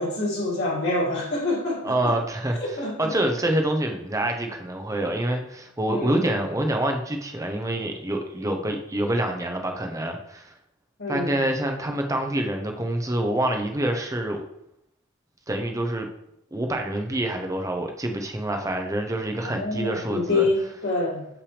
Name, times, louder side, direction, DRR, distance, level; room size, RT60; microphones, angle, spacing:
voice 1, 0.0-2.1 2.6-3.2 5.9-6.3 11.0-11.4 19.4-21.2, left 2 dB, 55° left, -5 dB, 2.3 m, -26 dB
voice 2, 1.8-10.5 11.1-14.4 15.5-16.1 16.5-20.5, right 1 dB, 15° right, 3 dB, 0.8 m, -26 dB
6.6 x 5.9 x 3.3 m, 0.78 s
head